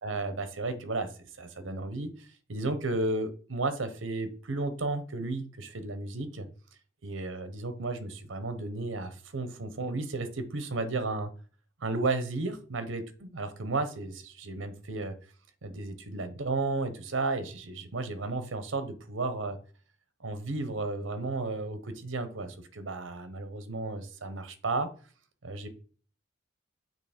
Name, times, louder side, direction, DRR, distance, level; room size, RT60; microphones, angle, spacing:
voice 1, 0.0-6.5 7.0-11.3 11.8-15.1 15.6-19.6 20.2-24.9 25.4-25.7, right 3 dB, 75° right, 10 dB, 0.9 m, -33 dB
6.6 x 3.1 x 5.0 m, 0.41 s
head